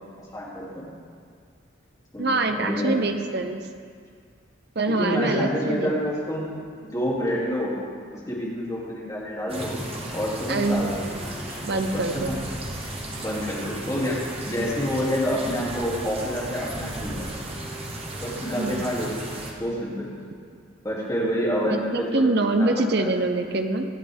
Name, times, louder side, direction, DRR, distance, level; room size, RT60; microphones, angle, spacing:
voice 1, 0.3-0.8 2.1-3.0 4.9-7.7 8.1-9.7 10.1-12.3 13.2-14.2 14.5-17.3 18.2-19.1 19.6-20.1 20.8-23.1, equal, 20° left, -6 dB, 2.8 m, -28 dB
voice 2, 2.2-3.7 4.7-6.0 10.5-10.9 11.6-12.4 14.0-14.1 18.6-18.9 21.6-23.9, right 2 dB, 60° right, 6 dB, 0.8 m, -25 dB
sound 1, 9.5-19.5, right 1 dB, 30° right, 1.5 m, -35 dB
25.0 x 8.4 x 3.6 m, 2.1 s
head